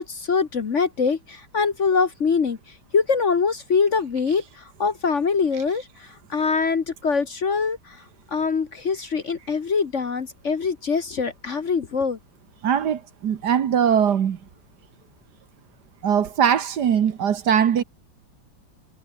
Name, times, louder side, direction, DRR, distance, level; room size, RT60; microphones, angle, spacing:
voice 1, 0.0-2.6 2.9-8.0 8.3-12.2, left 5 dB, 45° left, 1.3 m, -23 dB
voice 2, 12.6-14.4 16.0-17.8, right 8 dB, 60° right, 1.7 m, -21 dB
omnidirectional pair, 2.1 m